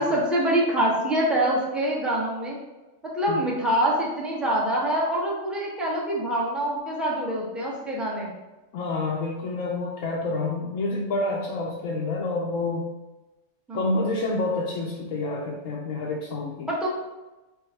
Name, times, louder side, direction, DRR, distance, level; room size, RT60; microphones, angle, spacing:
voice 1, 0.0-2.6 3.0-8.3 13.7-13.9 16.7-16.9, right 1 dB, ahead, -4 dB, 0.7 m, -25 dB
voice 2, 8.7-12.9 13.7-16.7, left 2 dB, 75° left, -2 dB, 0.9 m, -28 dB
4.7 x 2.2 x 4.4 m, 1.1 s
omnidirectional pair, 1.4 m